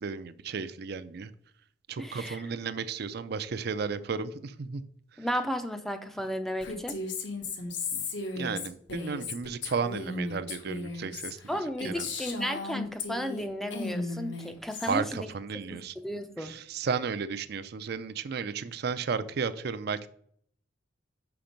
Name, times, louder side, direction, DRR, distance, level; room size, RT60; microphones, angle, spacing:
voice 1, 0.0-1.3 1.9-4.8 7.9-8.1 8.4-11.4 11.8-12.1 14.8-15.9 16.4-20.1, right 5 dB, 55° right, 13 dB, 0.4 m, -33 dB
voice 2, 2.0-2.4 5.2-7.0 11.5-15.3 15.7-16.5, equal, ahead, 8 dB, 0.5 m, -34 dB
Female speech woman speaking, 6.6-13.4 13.7-15.0, left 3 dB, 70° left, 1.1 m, -36 dB
5.8 x 5.1 x 5.1 m, 0.63 s
head